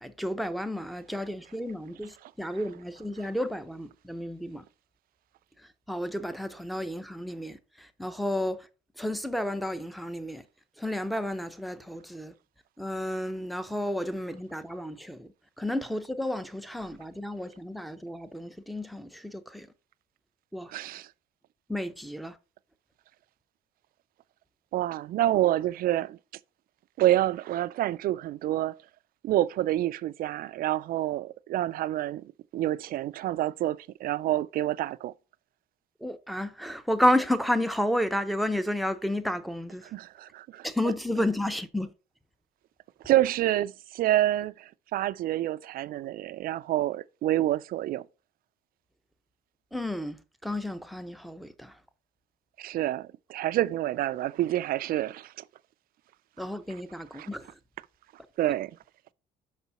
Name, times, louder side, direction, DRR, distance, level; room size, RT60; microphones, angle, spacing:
voice 1, 0.0-4.6 5.9-8.7 9.0-10.4 10.8-12.3 12.8-15.3 15.6-19.7 20.5-20.7 21.7-22.4 36.0-39.8 40.6-41.9 49.7-51.7 56.4-57.5, left 1 dB, ahead, 0.6 m, -31 dB
voice 2, 20.7-21.1 24.7-26.2 27.0-28.8 29.2-35.1 39.9-40.7 43.0-48.1 52.6-55.3 57.1-57.3 58.4-58.7, right 14 dB, 60° right, 0.4 m, -28 dB
5.5 x 4.1 x 5.6 m
cardioid pair, 110°, 17 cm